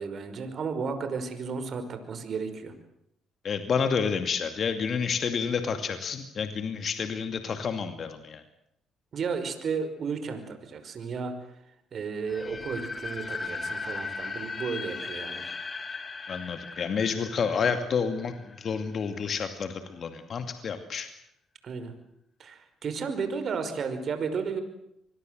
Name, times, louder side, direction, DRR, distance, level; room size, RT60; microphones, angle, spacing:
voice 1, 0.0-2.7 9.1-11.3 11.9-15.5 21.6-21.9 22.4-24.6, right 5 dB, 55° right, 9 dB, 5.4 m, -33 dB
voice 2, 3.4-8.4 16.3-21.1, left 6 dB, 55° left, 8 dB, 2.5 m, -29 dB
sound 1, 12.3-19.1, left 4 dB, 35° left, 3.2 m, -37 dB
26.0 x 21.5 x 7.9 m, 0.76 s
supercardioid pair, 65°, 0 cm